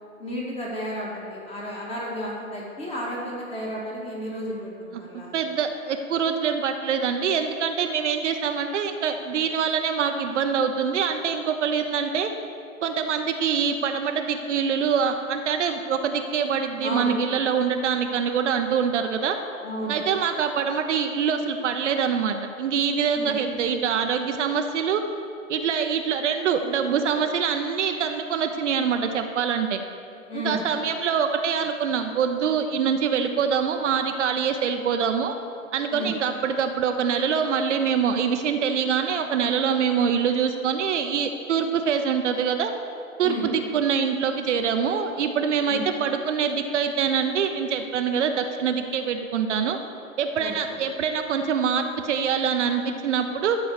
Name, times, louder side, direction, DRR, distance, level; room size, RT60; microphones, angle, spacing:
voice 1, 0.2-5.3 16.8-17.1 19.6-20.1 23.2-23.3 30.3-30.7 35.9-36.1 43.2-43.5 45.7-45.8 50.4-50.5, equal, 15° left, -3 dB, 2.0 m, -32 dB
voice 2, 5.1-12.3 12.8-19.4 19.9-25.0 25.5-29.8 30.3-35.3 35.7-42.7 43.2-49.8 50.2-53.6, right 7 dB, 60° right, 6 dB, 0.8 m, -24 dB
12.5 x 4.7 x 6.7 m, 2.4 s
figure-of-eight pair, 120°, 41 cm